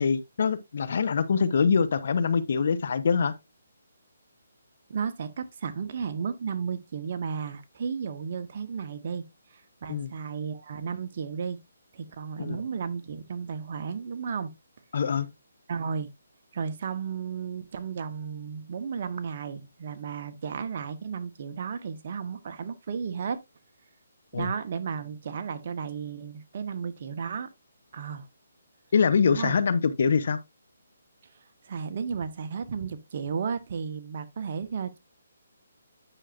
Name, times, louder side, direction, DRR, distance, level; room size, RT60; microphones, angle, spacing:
voice 1, 0.0-3.3 9.9-10.1 12.4-12.6 14.9-15.3 24.3-24.5 28.9-30.4, left 5 dB, 55° left, 1.0 m, -24 dB
voice 2, 4.9-9.2 9.5-11.6 11.9-14.5 15.7-16.1 16.5-23.4 24.3-27.5 27.9-28.3 29.3-29.6 31.6-35.0, right 6 dB, 45° right, 1.1 m, -33 dB
9.8 x 6.3 x 2.6 m
hypercardioid pair, 160°, 0 cm